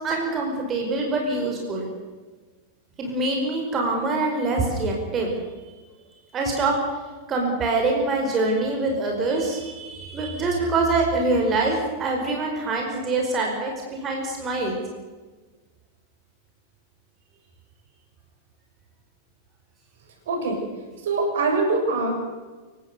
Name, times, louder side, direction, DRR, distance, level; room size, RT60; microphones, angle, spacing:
voice 1, 0.0-1.9 3.0-5.3 6.3-6.8 7.3-14.8, right 3 dB, 25° right, 1 dB, 5.0 m, -24 dB
voice 2, 20.3-20.6 21.0-22.1, right 3 dB, 60° right, 2 dB, 7.1 m, -23 dB
28.5 x 17.5 x 6.8 m, 1.3 s
figure-of-eight pair, 90°, 0 cm